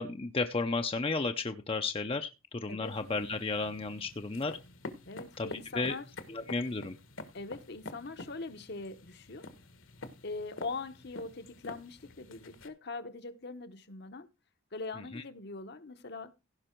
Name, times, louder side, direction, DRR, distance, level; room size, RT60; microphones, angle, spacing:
voice 1, 0.0-4.5 5.4-5.9 6.3-7.0 15.1-15.2, left 3 dB, 25° left, 0.6 m, -33 dB
sound 1, 2.8-12.7, left 2 dB, 70° left, 1.4 m, -48 dB
voice 2, 5.0-6.1 6.4-6.6 7.3-9.5 10.2-14.3 14.7-16.3, left 3 dB, 50° left, 0.9 m, -42 dB
16.5 x 5.5 x 4.5 m
head